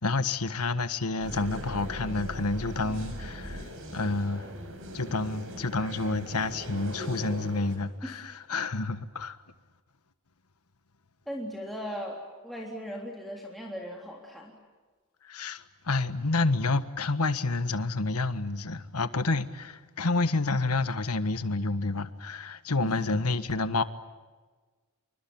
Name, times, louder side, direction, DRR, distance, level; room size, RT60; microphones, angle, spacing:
voice 1, 0.0-4.5 4.9-9.4 15.2-23.8, left 3 dB, 85° left, 1.5 m, -29 dB
sound 1, 1.2-7.8, equal, 65° right, 6.1 m, -40 dB
voice 2, 11.3-14.5 22.8-22.9, equal, ahead, 3.5 m, -38 dB
27.5 x 24.5 x 8.7 m
head